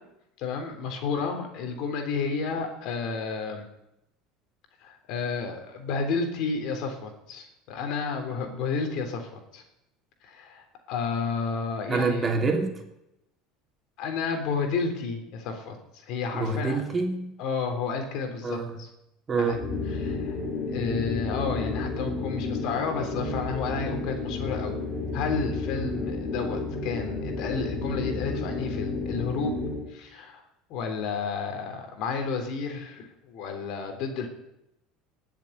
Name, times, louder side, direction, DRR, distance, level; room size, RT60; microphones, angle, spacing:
voice 1, 0.4-3.7 4.8-9.6 10.2-12.3 14.0-16.8 17.4-18.9 19.4-19.6 19.9-20.4 20.7-24.8 25.1-29.6 29.9-30.4 30.7-34.3, left 5 dB, 65° left, 5 dB, 3.5 m, -31 dB
voice 2, 11.9-12.8 16.3-17.3 18.4-18.8 19.3-19.7, right 4 dB, 25° right, 2 dB, 3.1 m, -26 dB
sound 1, 19.5-29.9, left 3 dB, 35° left, 3.4 m, -31 dB
19.0 x 7.6 x 8.1 m, 0.86 s
supercardioid pair, 90°, 0 cm